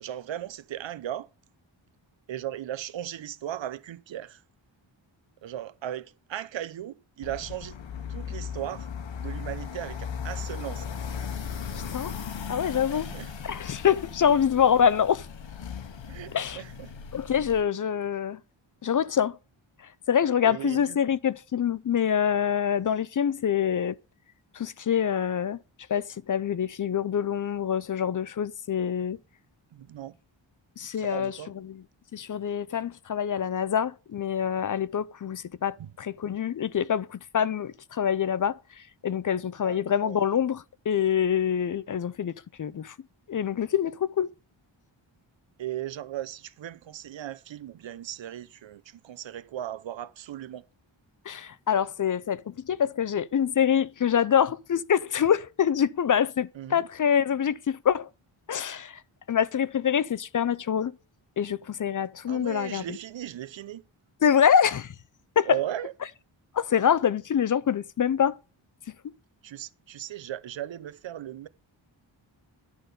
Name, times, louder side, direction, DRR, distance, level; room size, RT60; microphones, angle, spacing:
voice 1, 0.0-1.3 2.3-4.4 5.4-7.8 8.1-8.9 9.2-10.9 12.9-13.3 16.1-16.9 20.4-21.0 29.7-30.2 31.0-31.5 35.8-35.9 39.6-40.3 45.6-50.6 56.5-56.9 62.3-63.8 65.4-65.9 69.4-71.5, right 12 dB, 65° right, 0.7 m, -37 dB
sound 1, 7.2-17.6, left 7 dB, 70° left, 1.1 m, -37 dB
voice 2, 12.5-13.1 13.4-15.3 16.3-16.6 17.1-18.4 18.8-19.4 20.1-24.0 24.5-25.6 25.9-29.2 30.8-31.8 32.1-38.6 39.0-42.3 42.6-42.9 43.3-44.3 51.3-58.1 58.5-59.0 59.3-60.9 61.4-62.8 64.2-64.9 65.4-65.6 66.5-68.4, left 8 dB, 45° left, 0.4 m, -25 dB
11.0 x 4.0 x 6.6 m
wide cardioid pair, 120°, 48 cm